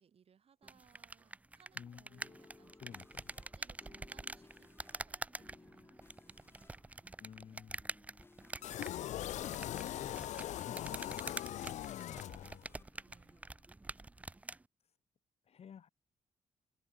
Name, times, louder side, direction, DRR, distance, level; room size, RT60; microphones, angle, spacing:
voice 1, 0.0-3.0 3.3-6.0 6.2-6.6 10.6-11.0 13.0-13.4, right 7 dB, 50° right, 5.8 m, -67 dB
sound 1, 0.6-14.6, right 2 dB, 10° right, 0.3 m, -47 dB
sound 2, 1.5-14.2, left 3 dB, 20° left, 3.1 m, -62 dB
voice 2, 1.7-2.3 2.8-3.4 7.2-7.8 9.8-11.6 12.1-12.7 15.5-15.9, left 8 dB, 55° left, 6.6 m, -53 dB
sound 3, 8.6-12.8, left 12 dB, 70° left, 0.4 m, -41 dB
open air
cardioid pair, 135°, 13 cm